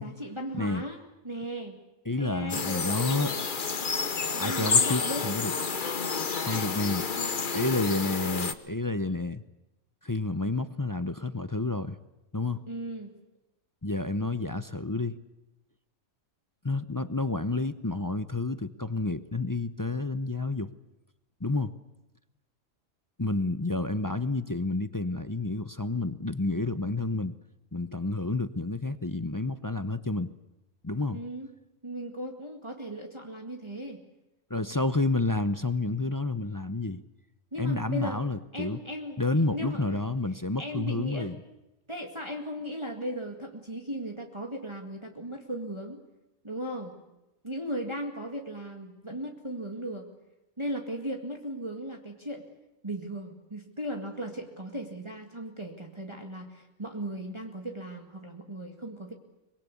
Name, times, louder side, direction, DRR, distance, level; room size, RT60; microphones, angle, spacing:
voice 1, 0.0-1.8 2.2-3.5 4.3-5.3 6.4-7.9 12.7-13.1 31.1-31.5 31.8-34.0 37.5-38.2 38.5-39.2 39.5-40.0 40.6-41.3 41.9-46.0 46.4-47.0 47.4-50.1 50.6-52.4 52.8-59.1, equal, 20° right, 2 dB, 2.2 m, -37 dB
voice 2, 0.5-0.8 2.1-3.3 4.4-5.5 6.4-7.0 7.5-9.4 10.0-12.0 12.3-12.7 13.8-15.2 16.6-20.7 21.4-21.7 23.2-27.3 27.7-30.3 30.8-31.2 34.5-37.0 37.6-38.8 39.2-41.4, left 2 dB, 20° left, 12 dB, 0.6 m, -30 dB
sound 1, 2.5-8.5, left 5 dB, 40° left, 1.2 m, -29 dB
24.5 x 22.0 x 8.4 m, 0.96 s
omnidirectional pair, 1.5 m